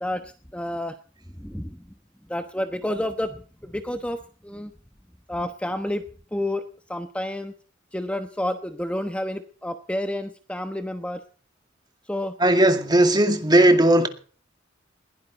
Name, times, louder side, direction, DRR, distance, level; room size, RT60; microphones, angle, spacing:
voice 1, 0.0-0.9 1.4-1.8 2.3-4.2 4.4-4.7 5.3-6.1 6.3-7.5 7.9-11.2 12.1-12.4, left 1 dB, 5° left, 1.1 m, -30 dB
voice 2, 12.4-14.1, right 1 dB, 20° right, 2.2 m, -17 dB
21.0 x 16.0 x 4.1 m
head